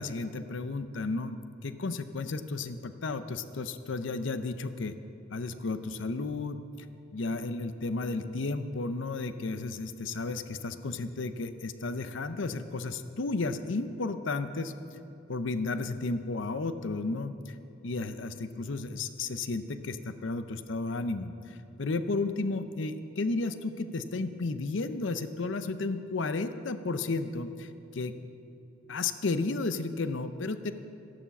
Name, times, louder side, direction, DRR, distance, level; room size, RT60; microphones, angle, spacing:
voice 1, 0.0-4.9 5.3-6.6 7.1-14.7 15.3-17.6 17.8-28.1 28.9-30.7, left 3 dB, 65° left, 11 dB, 0.6 m, -33 dB
14.5 x 11.0 x 7.1 m, 2.8 s
head